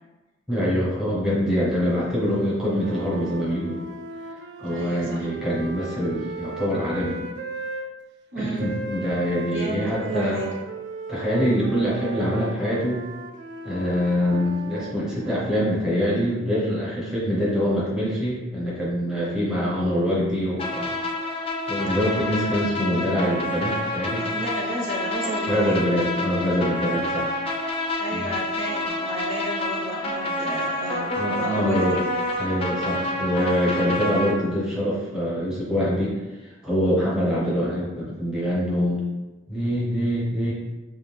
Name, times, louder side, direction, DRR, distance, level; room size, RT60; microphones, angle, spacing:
voice 1, 0.5-3.8 4.6-7.2 8.3-10.5 11.1-13.0 13.6-20.9 21.2-21.4 21.7-24.3 25.5-27.3 28.1-28.3 31.2-32.0 32.3-39.0 39.5-40.5, equal, 5° right, -7 dB, 1.0 m, -24 dB
sound 1, 1.6-7.9 8.6-15.7, right 3 dB, 60° right, 0.3 m, -37 dB
voice 2, 4.7-5.3 8.3-8.7 9.4-10.5 24.2-25.8 27.1-27.2 28.0-32.0, right 1 dB, 75° right, -3 dB, 1.1 m, -32 dB
sound 2, 20.6-34.3, left 1 dB, 30° left, 0.5 m, -28 dB
4.8 x 2.4 x 3.3 m, 1.1 s
head